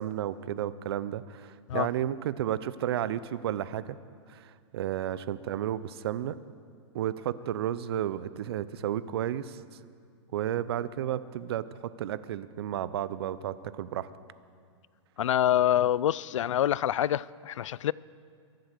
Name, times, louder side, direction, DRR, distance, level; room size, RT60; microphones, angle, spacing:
voice 1, 0.0-4.0 4.3-6.3 6.9-9.6 10.3-14.1, right 11 dB, 55° right, 0.6 m, -32 dB
voice 2, 15.2-17.9, left 11 dB, 90° left, 0.4 m, -26 dB
22.5 x 7.9 x 6.6 m
hypercardioid pair, 155°, 16 cm